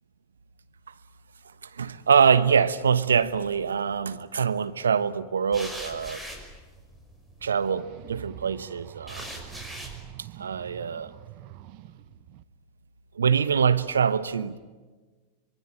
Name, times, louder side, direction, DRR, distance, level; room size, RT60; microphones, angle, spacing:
voice 1, 1.6-6.2 7.4-9.3 10.2-11.1 13.1-14.6, right 6 dB, 80° right, 1.1 m, -24 dB
sound 1, 3.2-3.8 5.5-7.5 9.1-10.0, equal, 5° right, 5.7 m, -41 dB
sound 2, 7.4-12.4, right 16 dB, 50° right, 1.1 m, -46 dB
25.0 x 24.5 x 8.8 m
figure-of-eight pair, 95°, 0 cm